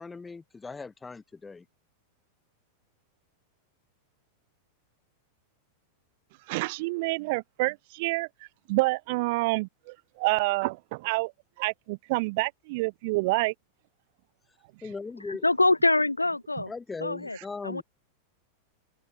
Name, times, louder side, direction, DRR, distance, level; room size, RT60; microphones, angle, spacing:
voice 1, 0.0-1.7 14.5-15.5 16.7-17.8, left 4 dB, 10° left, 7.8 m, -39 dB
voice 2, 6.5-8.3 8.7-11.3 11.6-13.5, right 25 dB, 50° right, 1.9 m, -28 dB
voice 3, 15.4-16.7 17.0-17.4 17.6-17.8, left 2 dB, 85° left, 4.0 m, -24 dB
open air
figure-of-eight pair, 90°, 0 cm